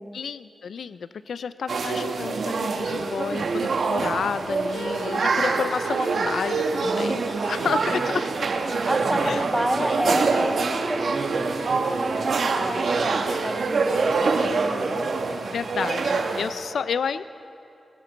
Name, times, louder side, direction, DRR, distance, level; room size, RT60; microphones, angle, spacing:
voice 1, 0.1-8.3 9.2-9.4 15.5-17.2, left 6 dB, 70° left, 14 dB, 0.3 m, -30 dB
sound 1, 1.7-16.5, right 4 dB, 60° right, 1.0 m, -25 dB
voice 2, 8.7-15.0, right 1 dB, 5° right, 9 dB, 0.5 m, -30 dB
20.0 x 16.5 x 4.0 m, 2.6 s
wide cardioid pair, 170°, 0 cm